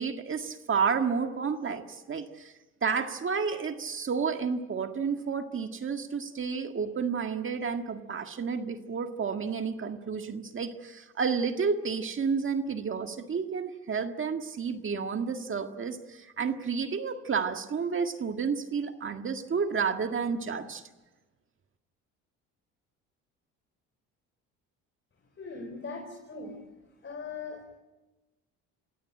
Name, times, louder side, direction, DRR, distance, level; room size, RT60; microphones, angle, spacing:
voice 1, 0.0-2.5 2.8-20.8, right 5 dB, 35° right, 6 dB, 1.8 m, -31 dB
voice 2, 25.4-26.6 27.0-27.8, left 4 dB, 35° left, 3 dB, 4.8 m, -40 dB
28.0 x 17.0 x 8.8 m, 1.1 s
supercardioid pair, 85°, 33 cm